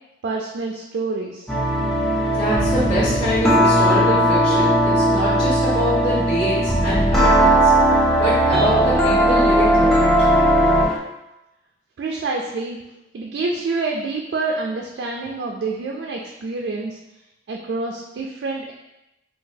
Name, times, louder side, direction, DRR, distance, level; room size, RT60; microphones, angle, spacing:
voice 1, 0.2-1.5 12.0-12.8 13.1-17.0 17.5-18.7, right 3 dB, 70° right, 0 dB, 0.3 m, -27 dB
sound 1, 1.5-11.0, equal, ahead, 0.4 m, -17 dB
voice 2, 2.3-7.7 8.2-10.1, equal, 30° left, -14 dB, 1.1 m, -25 dB
3.8 x 2.3 x 2.7 m, 0.95 s
head